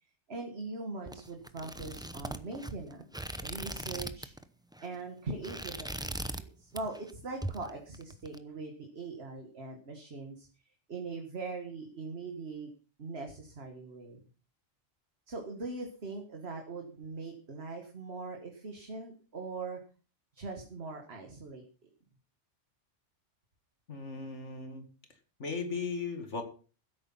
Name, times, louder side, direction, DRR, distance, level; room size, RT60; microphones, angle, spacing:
voice 1, 0.3-4.3 4.8-10.5 10.9-12.7 13.0-14.2 15.3-19.8 20.3-21.9, right 3 dB, 55° right, 3 dB, 2.0 m, -41 dB
sound 1, 1.1-4.4 4.7-5.0 5.3-6.5 6.8-7.1 7.4-8.4, right 1 dB, 5° right, 0.7 m, -40 dB
voice 2, 23.9-24.9 25.4-26.4, left 4 dB, 75° left, 6 dB, 2.5 m, -37 dB
15.5 x 8.7 x 5.7 m, 0.37 s
omnidirectional pair, 1.2 m